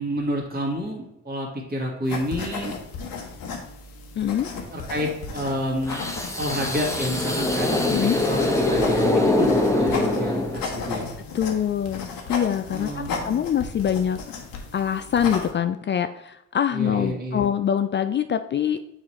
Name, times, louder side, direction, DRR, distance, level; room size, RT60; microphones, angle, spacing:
voice 1, 0.0-2.8 4.7-6.1 6.4-11.1 12.7-13.4 16.7-17.4, equal, 25° right, -1 dB, 1.8 m, -29 dB
sound 1, 2.0-15.5, left 4 dB, 65° left, 1.2 m, -35 dB
voice 2, 4.2-4.5 7.9-8.2 11.3-14.2 14.7-18.8, left 9 dB, 30° left, 9 dB, 0.4 m, -24 dB
sound 2, 5.9-10.9, left 2 dB, 10° left, 1.1 m, -23 dB
7.3 x 4.2 x 3.2 m, 0.82 s
hypercardioid pair, 50°, 36 cm